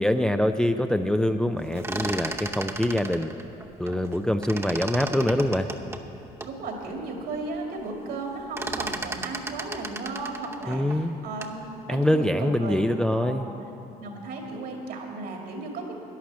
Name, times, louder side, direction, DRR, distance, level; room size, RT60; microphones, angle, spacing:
voice 1, 0.0-3.3 3.8-5.7 10.7-11.2 11.9-13.5, left 1 dB, 5° left, 7 dB, 0.4 m, -24 dB
sound 1, 1.6-4.2 4.4-6.6 7.1-7.2 7.4-7.8 8.1-11.6, right 3 dB, 15° right, 0.8 m, -35 dB
voice 2, 6.4-13.4 14.0-15.9, right 3 dB, 70° right, 1 dB, 2.4 m, -35 dB
11.5 x 10.5 x 7.4 m, 2.8 s
cardioid pair, 110°, 17 cm